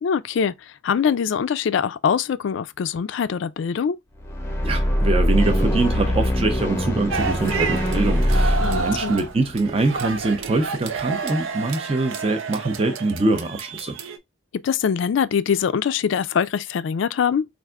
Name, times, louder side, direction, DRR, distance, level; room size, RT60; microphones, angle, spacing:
voice 1, 0.0-4.0 8.6-9.2 14.6-17.5, left 7 dB, 70° left, 0.3 m, -23 dB
sound 1, 4.2-10.5, equal, 10° left, 0.6 m, -23 dB
voice 2, 4.6-14.0, right 2 dB, 30° right, 0.5 m, -24 dB
sound 2, 7.1-14.2, right 5 dB, 85° right, 0.6 m, -30 dB
4.5 x 2.5 x 2.3 m
head